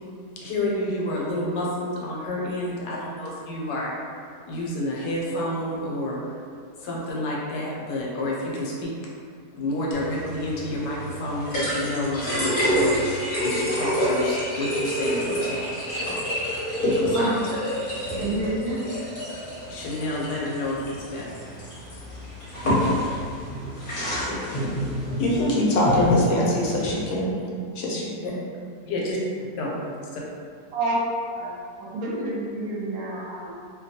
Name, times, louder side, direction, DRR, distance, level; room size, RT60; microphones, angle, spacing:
voice 1, 0.4-3.9 4.5-6.2 6.8-8.9 9.6-12.9 13.4-16.4 16.9-17.3 19.7-21.3 28.2-28.3 28.9-29.2 29.6-30.2, left 1 dB, 90° left, 1.3 m, -29 dB
sound 1, 9.9-27.0, equal, 45° left, 0.7 m, -28 dB
voice 2, 18.2-18.9 30.7-30.9 31.3-31.5 31.8-33.6, right 2 dB, 65° right, 1.1 m, -29 dB
voice 3, 25.2-27.4 27.8-28.3, left 1 dB, 75° left, 1.0 m, -22 dB
2.8 x 2.2 x 2.7 m
omnidirectional pair, 1.8 m